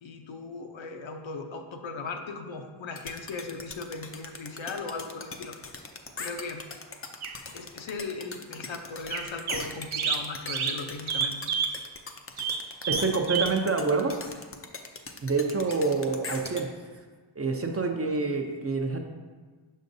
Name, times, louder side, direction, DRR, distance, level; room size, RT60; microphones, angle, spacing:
voice 1, 0.0-5.6 6.2-6.6 7.5-11.4, left 4 dB, 70° left, 4 dB, 0.7 m, -38 dB
sound 1, 3.0-16.6, left 4 dB, 30° left, 0.4 m, -40 dB
sound 2, 7.2-7.3 9.1-9.7 9.9-11.8 12.4-13.6 15.7-15.8 16.5-16.6, right 6 dB, 80° right, 0.7 m, -29 dB
voice 2, 12.9-14.2 15.2-16.7 17.4-19.0, right 4 dB, 30° right, 3 dB, 0.5 m, -27 dB
6.4 x 6.2 x 2.6 m, 1.4 s
wide cardioid pair, 130°, 48 cm